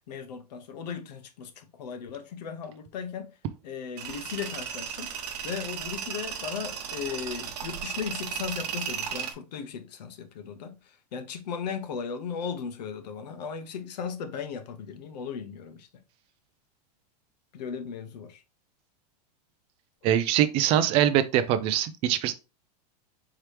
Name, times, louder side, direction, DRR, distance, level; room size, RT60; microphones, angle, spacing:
voice 1, 0.1-3.3 3.6-5.1 5.4-16.0 17.5-18.4, left 6 dB, 85° left, 0.9 m, -37 dB
Tools, 4.0-9.3, right 8 dB, 75° right, 0.9 m, -35 dB
voice 2, 20.0-22.3, right 11 dB, 30° right, 0.3 m, -23 dB
4.7 x 3.0 x 3.2 m
supercardioid pair, 160°, 21 cm